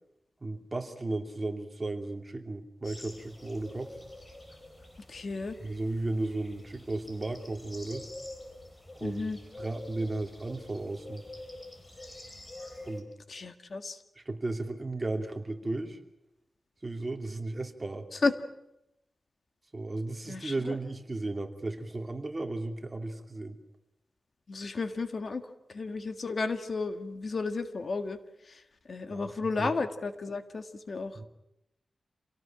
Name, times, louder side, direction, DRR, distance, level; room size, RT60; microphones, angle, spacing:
voice 1, 0.4-3.9 5.6-8.1 8.9-9.3 9.6-11.2 12.8-13.1 14.2-16.0 16.8-18.1 19.7-23.6 29.1-29.3 29.6-29.7 31.1-31.2, right 2 dB, 30° right, 5 dB, 2.8 m, -35 dB
sound 1, 2.8-13.0, left 1 dB, 25° left, 4.5 m, -47 dB
voice 2, 5.1-5.6 9.0-9.4 13.3-14.0 18.1-18.3 20.3-20.8 24.5-25.4 25.7-28.2 28.4-28.6 28.9-31.2, left 3 dB, 55° left, 9 dB, 1.7 m, -33 dB
27.5 x 18.5 x 8.9 m, 0.85 s
wide cardioid pair, 120°, 0 cm